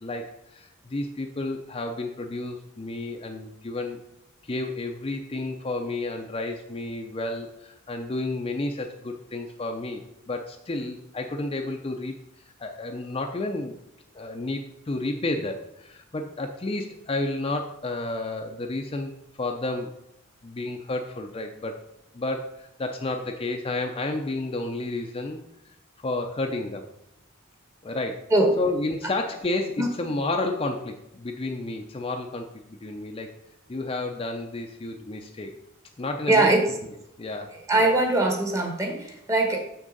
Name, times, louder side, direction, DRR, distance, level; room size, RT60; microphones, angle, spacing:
voice 1, 0.0-4.0 4.4-12.1 12.6-13.8 14.1-19.9 20.4-21.9 22.1-25.4 26.0-26.9 27.8-28.3 28.6-33.3 33.7-35.5 36.0-36.5 37.2-38.0, left 2 dB, 30° left, 4 dB, 0.5 m, -31 dB
voice 2, 36.3-36.7 37.7-39.6, right 2 dB, 15° right, 3 dB, 1.0 m, -21 dB
6.6 x 6.2 x 3.9 m, 0.83 s
head